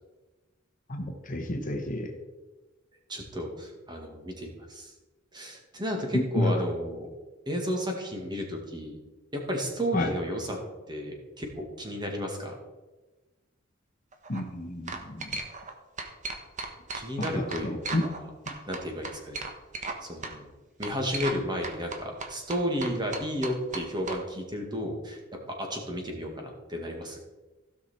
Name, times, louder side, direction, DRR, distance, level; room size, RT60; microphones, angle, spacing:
voice 1, 0.9-2.1 6.4-6.5 9.9-10.1 14.3-15.3 17.2-18.0 18.5-18.6, left 1 dB, 40° left, 3 dB, 1.1 m, -31 dB
voice 2, 3.1-4.9 5.3-7.1 7.5-9.0 9.3-10.6 10.9-12.5 16.9-18.3 18.7-19.4 20.0-20.5 20.8-25.2 25.5-27.2, equal, 20° right, 1 dB, 2.1 m, -33 dB
sound 1, 14.1-14.4 14.9-15.7 16.0-18.2 18.5-20.0 20.2-20.3 20.8-21.4 21.6-24.2, right 3 dB, 40° right, 1.2 m, -36 dB
16.0 x 6.0 x 4.4 m, 1.2 s
head